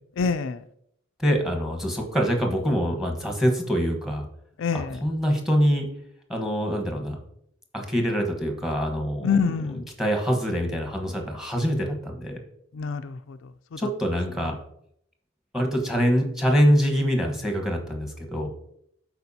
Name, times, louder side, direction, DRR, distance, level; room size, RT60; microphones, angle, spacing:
voice 1, 0.2-0.6 4.6-5.0 9.2-9.8 12.7-13.4 13.7-13.8, left 5 dB, 70° left, 10 dB, 0.4 m, -26 dB
voice 2, 1.2-4.2 4.7-5.9 6.3-7.2 7.7-9.4 10.0-12.4 13.8-14.6 15.5-18.5, equal, ahead, 3 dB, 1.2 m, -24 dB
12.0 x 4.6 x 2.8 m, 0.71 s
head